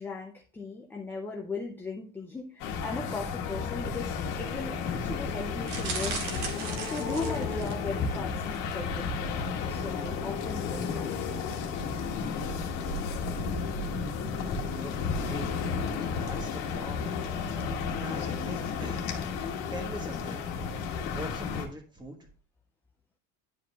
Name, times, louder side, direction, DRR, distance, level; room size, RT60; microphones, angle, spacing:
voice 1, 0.0-6.2 6.9-9.3 9.7-11.3, left 3 dB, 5° left, 0 dB, 0.4 m, -38 dB
sound 1, 2.6-21.7, left 5 dB, 55° left, 1.4 m, -33 dB
sound 2, 3.4-17.9, left 4 dB, 75° left, 1.4 m, -39 dB
sound 3, 5.7-7.9 8.5-8.7 9.0-9.1, right 5 dB, 75° right, 1.8 m, -37 dB
voice 2, 15.2-15.6 16.0-17.3 17.9-19.1 19.7-20.5 20.9-22.3, equal, 10° right, 4 dB, 1.3 m, -42 dB
11.0 x 4.9 x 2.3 m, 0.41 s
cardioid pair, 155°, 39 cm